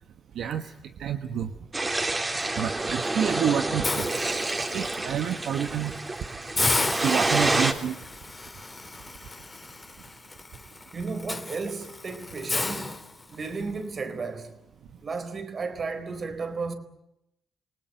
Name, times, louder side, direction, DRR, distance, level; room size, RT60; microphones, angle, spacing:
voice 1, 0.4-0.7 1.0-1.5 2.6-4.1 4.7-5.9 7.0-7.9, right 9 dB, 75° right, 1.2 m, -28 dB
sound 1, 1.7-7.7, right 2 dB, 25° right, 3.6 m, -28 dB
Hiss, 3.8-4.9 5.4-5.6 6.0-6.1 6.6-13.6, left 3 dB, 25° left, 2.1 m, -33 dB
voice 2, 10.9-13.0 13.3-14.5 15.0-16.7, right 4 dB, 50° right, 4.1 m, -33 dB
28.0 x 19.0 x 9.4 m
supercardioid pair, 60°, 0 cm